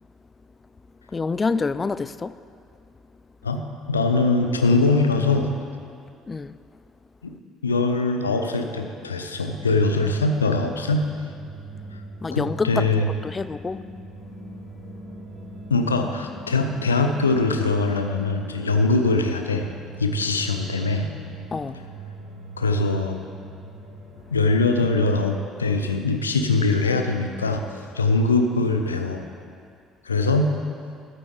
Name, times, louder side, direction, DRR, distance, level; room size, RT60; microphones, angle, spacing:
voice 1, 1.1-2.3 6.3-6.5 12.2-12.9 13.2-13.8 21.5-21.8, left 4 dB, 25° left, 15 dB, 0.4 m, -26 dB
voice 2, 3.9-5.5 7.2-7.3 7.6-11.1 12.3-13.1 15.7-19.7 20.0-21.1 22.6-23.2 24.3-27.6 27.9-29.3 30.0-30.5, left 3 dB, 80° left, 6 dB, 0.7 m, -22 dB
sound 1, 9.3-25.1, right 1 dB, 60° right, 3.4 m, -41 dB
13.5 x 11.5 x 3.4 m, 2.3 s
figure-of-eight pair, 55°, 0 cm